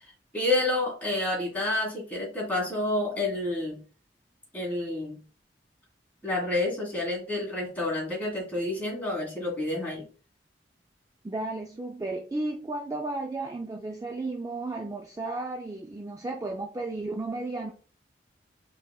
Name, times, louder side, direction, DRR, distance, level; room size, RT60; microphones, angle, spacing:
voice 1, 0.0-3.8 4.5-5.2 6.2-10.0, left 2 dB, 10° left, -3 dB, 1.8 m, -29 dB
voice 2, 11.2-17.7, right 2 dB, 20° right, 2 dB, 0.4 m, -33 dB
4.6 x 3.5 x 2.3 m, 0.37 s
head